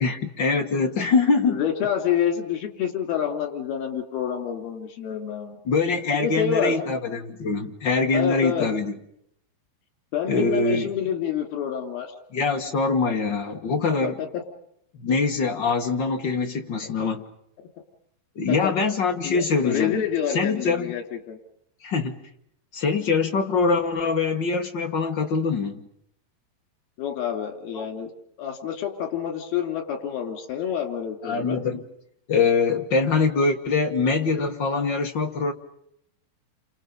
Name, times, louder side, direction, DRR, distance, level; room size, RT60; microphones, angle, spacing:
voice 1, 0.0-1.6 5.6-8.9 10.3-10.9 12.3-14.2 15.0-17.2 18.3-19.9 20.3-20.9 21.8-22.1 22.7-25.8 27.7-27.9 31.2-31.8 32.3-35.5, left 4 dB, 55° left, 3 dB, 1.3 m, -23 dB
voice 2, 1.5-5.6 6.2-6.8 8.1-8.7 10.1-12.1 14.0-14.3 18.6-18.7 19.2-21.4 27.0-28.1 28.4-31.6, left 8 dB, 80° left, 5 dB, 4.7 m, -27 dB
30.0 x 27.5 x 5.3 m, 0.72 s
omnidirectional pair, 4.3 m